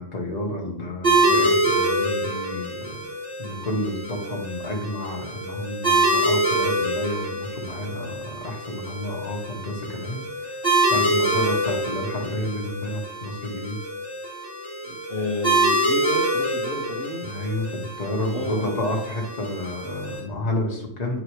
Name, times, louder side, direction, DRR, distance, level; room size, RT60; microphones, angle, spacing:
voice 1, 0.0-3.0 3.4-10.6 10.9-13.8 17.2-21.2, left 1 dB, 35° left, -1 dB, 1.6 m, -30 dB
sound 1, 1.0-20.2, right 1 dB, 45° right, 3.0 m, -25 dB
voice 2, 14.8-17.2 18.2-18.8, left 1 dB, 55° left, -4 dB, 1.4 m, -31 dB
9.5 x 4.8 x 3.2 m, 0.67 s
omnidirectional pair, 1.2 m